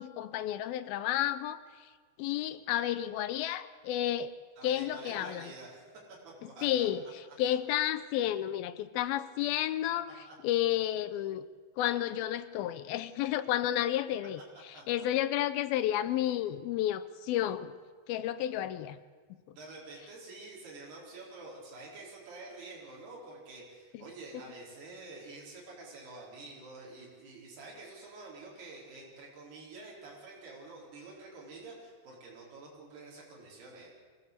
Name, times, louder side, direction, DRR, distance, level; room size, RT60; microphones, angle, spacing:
voice 1, 0.0-1.6 2.2-4.3 4.6-5.5 6.6-7.0 7.4-10.1 10.4-11.4 11.8-14.4 14.9-17.7 18.1-19.0, left 12 dB, 80° left, 13 dB, 2.5 m, -31 dB
voice 2, 4.6-6.9 10.3-10.4 14.7-15.1 19.5-33.9, right 3 dB, 75° right, -4 dB, 6.4 m, -48 dB
24.0 x 15.5 x 8.2 m, 1.5 s
omnidirectional pair, 4.6 m